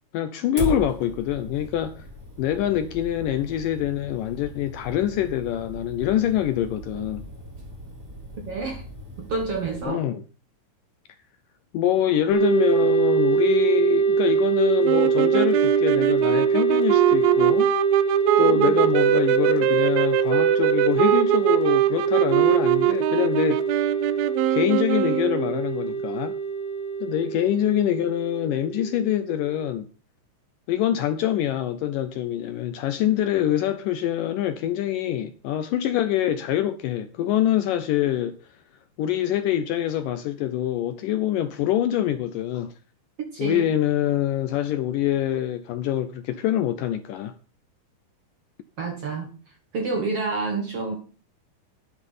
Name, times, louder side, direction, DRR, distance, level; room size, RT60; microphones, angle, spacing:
voice 1, 0.1-2.1 2.4-7.2 9.9-10.2 11.7-17.7 18.4-23.6 24.5-26.3 27.0-29.9 30.7-38.4 39.0-42.7 43.4-47.3, left 11 dB, 75° left, 2.0 m, -25 dB
Fire, 0.6-9.8, right 1 dB, 25° right, 3.8 m, -38 dB
voice 2, 8.5-8.8 9.3-10.0 18.4-18.8 43.3-43.7 48.8-49.3 49.7-51.0, right 3 dB, 55° right, 1.7 m, -28 dB
sound 1, 12.3-29.7, right 5 dB, 60° left, 3.6 m, -24 dB
sound 2, 14.8-25.6, right 13 dB, 80° right, 2.4 m, -23 dB
11.0 x 10.0 x 5.5 m
omnidirectional pair, 4.5 m